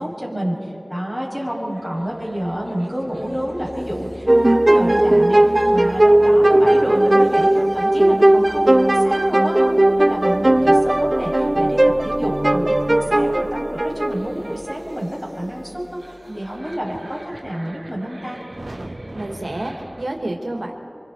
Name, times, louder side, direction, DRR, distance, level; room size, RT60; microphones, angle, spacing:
voice 1, 0.0-9.6 10.0-18.4, equal, ahead, -3 dB, 7.6 m, -28 dB
sound 1, 1.7-20.0, right 1 dB, 70° right, 2.1 m, -41 dB
sound 2, 4.3-14.7, right 1 dB, 45° right, 0.6 m, -16 dB
voice 2, 19.1-20.7, right 1 dB, 90° right, 1 dB, 2.0 m, -29 dB
29.5 x 25.0 x 4.8 m, 2.7 s
wide cardioid pair, 40°, 0 cm